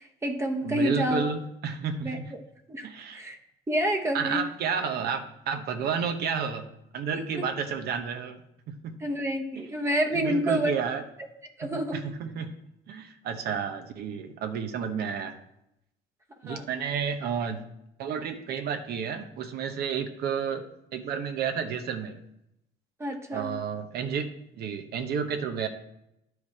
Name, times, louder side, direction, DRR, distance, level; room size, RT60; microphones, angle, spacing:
voice 1, 0.0-1.3 2.0-2.4 2.7-3.4 3.7-4.4 7.1-7.4 9.0-10.8 11.6-12.0 16.5-16.7 23.0-23.5, equal, 15° right, 3 dB, 1.0 m, -29 dB
voice 2, 0.6-2.3 2.8-3.2 4.1-6.7 6.9-8.4 8.7-9.0 9.6-9.7 10.1-11.0 11.6-12.5 12.9-15.3 16.4-17.6 18.0-20.7 20.9-22.2 23.3-25.7, right 6 dB, 70° right, 7 dB, 1.0 m, -31 dB
10.5 x 4.8 x 4.8 m, 0.83 s
cardioid pair, 110°, 17 cm